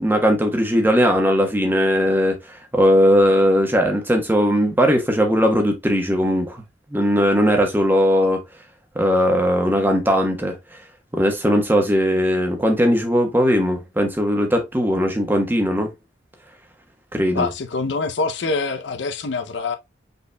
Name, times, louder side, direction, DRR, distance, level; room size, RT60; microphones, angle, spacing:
voice 1, 0.0-2.4 2.7-6.6 6.9-8.4 8.9-10.6 11.1-15.9 17.1-17.5, equal, 10° right, 1.1 m, -18 dB
voice 2, 17.3-19.8, left 3 dB, 75° left, 0.6 m, -25 dB
5.4 x 4.0 x 2.2 m
head